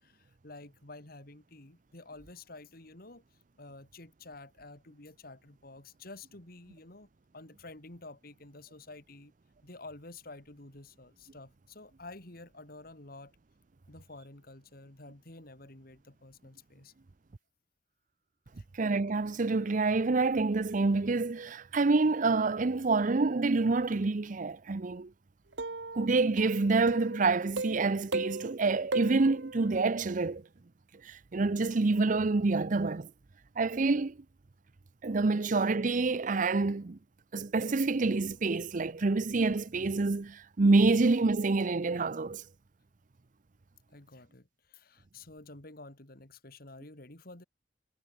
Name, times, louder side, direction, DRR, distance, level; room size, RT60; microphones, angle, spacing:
voice 1, 0.0-3.2 3.6-7.1 7.3-9.3 9.6-13.3 13.9-16.9 18.6-18.7 43.9-47.4, left 2 dB, 55° left, 3.1 m, -50 dB
voice 2, 18.8-25.1 25.9-30.4 31.1-33.1 33.6-34.2 35.0-37.0 37.3-42.4, right 3 dB, 45° right, 0.6 m, -27 dB
sound 1, 25.5-27.2 27.6-28.5 28.9-30.0, right 3 dB, 80° right, 1.7 m, -36 dB
head